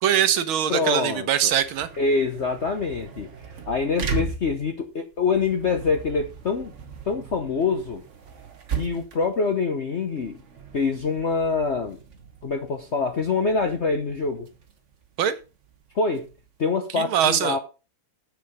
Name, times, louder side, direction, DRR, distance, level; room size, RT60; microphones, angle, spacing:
voice 1, 0.0-1.9 15.2-15.4 16.9-17.6, right 9 dB, 80° right, 1.7 m, -22 dB
voice 2, 0.7-1.5 2.0-3.3 3.7-6.7 7.1-8.0 8.7-10.4 10.7-12.0 12.4-14.5 15.9-16.3 16.6-17.6, left 4 dB, 55° left, 0.7 m, -25 dB
sound 1, 1.3-16.7, right 5 dB, 40° right, 1.2 m, -38 dB
7.8 x 6.9 x 5.1 m
omnidirectional pair, 2.3 m